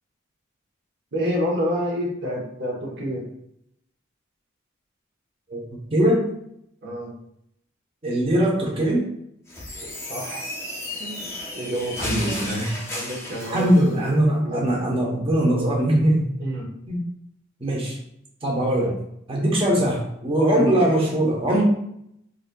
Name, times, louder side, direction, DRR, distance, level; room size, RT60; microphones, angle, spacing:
voice 1, 1.1-3.2 6.8-7.1 10.1-10.5 11.0-11.3 11.5-12.2 12.9-14.1 14.4-14.6 16.4-16.7, equal, 55° right, -4 dB, 1.1 m, -28 dB
voice 2, 5.9-6.2 8.0-9.1 12.0-12.7 13.5-16.3 16.9-17.0 17.6-18.0 18.4-19.0 19.3-21.6, right 1 dB, 30° right, -2 dB, 0.9 m, -21 dB
sound 1, 9.5-13.9, left 1 dB, 15° left, 0.6 m, -33 dB
3.9 x 2.7 x 2.2 m, 0.75 s
head